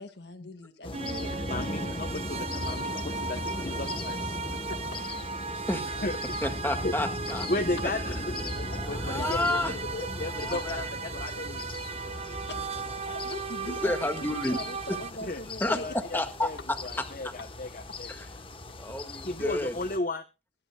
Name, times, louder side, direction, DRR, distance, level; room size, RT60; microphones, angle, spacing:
voice 1, 0.0-1.7 4.5-5.0 9.2-9.3 12.3-12.7 13.0-15.9, left 1 dB, 65° left, 1.8 m, -42 dB
sound 1, 0.8-20.0, left 2 dB, 30° left, 1.2 m, -38 dB
sound 2, 0.9-15.1, right 5 dB, 35° right, 0.7 m, -37 dB
voice 2, 1.5-4.4 5.8-6.2 6.8-7.0 7.5-8.0 8.4-11.6 15.3-15.4 15.8-18.1 19.2-20.2, left 2 dB, 45° left, 1.0 m, -35 dB
voice 3, 6.4-7.5 8.1-8.2 8.8-9.7 10.2-10.8 13.0-13.1 13.7-14.6 15.6-15.8 16.1-16.8 18.1-18.3 18.8-19.7, left 1 dB, 10° left, 1.9 m, -31 dB
22.0 x 11.5 x 2.3 m
head